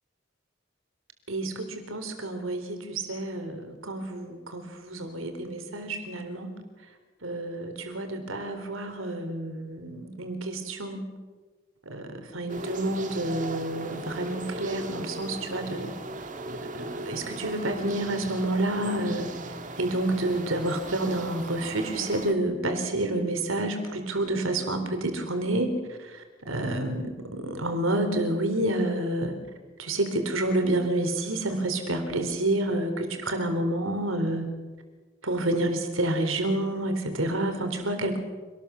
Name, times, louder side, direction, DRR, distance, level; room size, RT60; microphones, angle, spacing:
voice 1, 1.3-6.5 7.2-11.1 11.9-15.9 16.5-19.3 19.8-29.4 29.8-34.5 35.2-38.2, right 1 dB, 85° right, 7 dB, 4.0 m, -29 dB
sound 1, 12.5-22.3, right 2 dB, 40° right, 1.9 m, -38 dB
26.5 x 19.5 x 7.2 m, 1.4 s
head